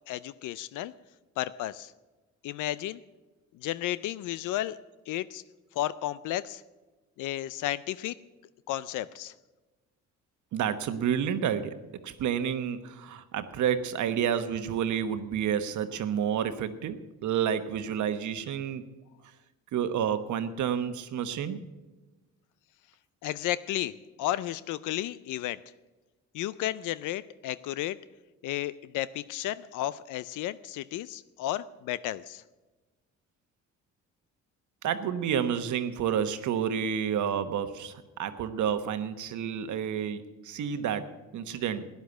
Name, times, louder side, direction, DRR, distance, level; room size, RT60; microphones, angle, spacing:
voice 1, 0.1-0.9 1.4-1.9 2.4-3.0 3.6-4.8 5.1-5.4 5.8-6.6 7.2-8.2 8.7-9.3 23.2-25.6 26.3-28.0 28.4-32.4, left 14 dB, 85° left, 17 dB, 0.5 m, -33 dB
voice 2, 10.5-11.8 12.0-18.8 19.7-21.6 34.8-41.1 41.3-41.9, right 8 dB, 75° right, 10 dB, 1.1 m, -30 dB
12.5 x 10.5 x 8.0 m, 1.2 s
cardioid pair, 90°, 30 cm